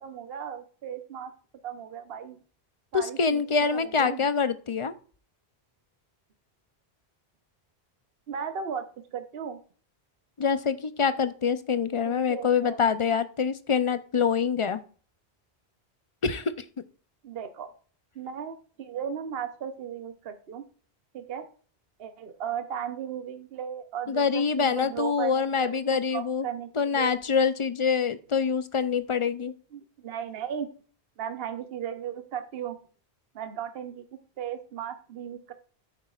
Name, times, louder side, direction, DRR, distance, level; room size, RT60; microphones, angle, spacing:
voice 1, 0.0-1.3 1.6-2.4 2.9-3.4 3.7-4.2 8.3-8.9 9.1-9.6 12.0-12.8 17.2-17.7 18.1-20.6 21.1-21.5 22.0-27.2 29.7-30.7 31.2-32.8 33.3-35.5, right 8 dB, 70° right, 8 dB, 1.0 m, -36 dB
voice 2, 2.9-4.9 10.4-14.8 16.2-16.5 24.1-26.5 26.8-29.5, left 6 dB, 40° left, 13 dB, 0.5 m, -25 dB
9.8 x 8.6 x 2.4 m, 0.41 s
omnidirectional pair, 1.1 m